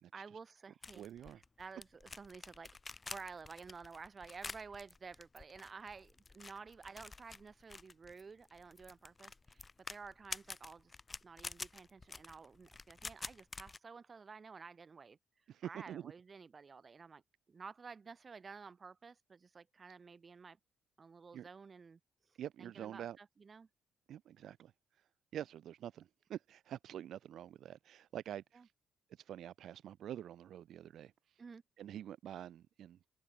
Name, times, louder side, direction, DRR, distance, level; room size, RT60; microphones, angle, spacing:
voice 1, 0.1-1.0 1.6-2.7 3.1-10.9 11.2-15.2 15.6-17.2 17.5-20.6 21.0-22.0 22.3-23.7 28.5-28.7 31.4-31.6, right 5 dB, 35° right, 5.9 m, -52 dB
sound 1, 0.8-13.8, left 3 dB, 25° left, 1.8 m, -49 dB
voice 2, 0.9-1.4 15.5-16.1 21.3-21.4 22.4-23.2 24.1-28.7 29.1-31.4 31.8-33.0, right 10 dB, 70° right, 1.9 m, -47 dB
open air
cardioid pair, 90°, 0 cm